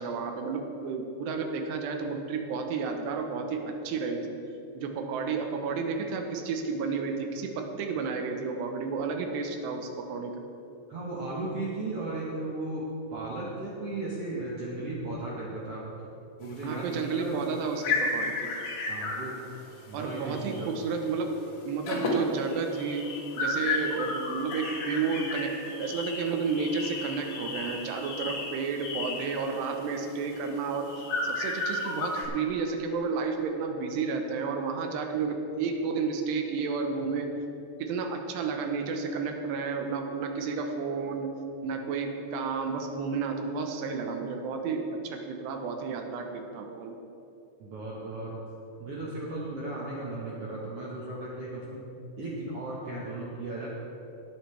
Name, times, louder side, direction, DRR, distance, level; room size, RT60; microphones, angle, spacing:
voice 1, 0.0-4.4 4.8-10.4 16.6-18.5 19.9-21.3 21.6-23.1 23.4-30.9 31.2-37.3 37.8-41.3 41.6-47.0, right 5 dB, 90° right, 4 dB, 3.1 m, -31 dB
voice 2, 10.9-15.8 16.4-17.6 18.9-19.4 19.9-20.8 47.6-48.3 48.8-51.8 52.2-53.7, right 2 dB, 65° right, -5 dB, 1.4 m, -36 dB
sound 1, 16.4-20.8 21.1-21.3 21.6-32.3, left 3 dB, 80° left, 3.7 m, -33 dB
19.0 x 8.3 x 3.3 m, 2.9 s
omnidirectional pair, 4.8 m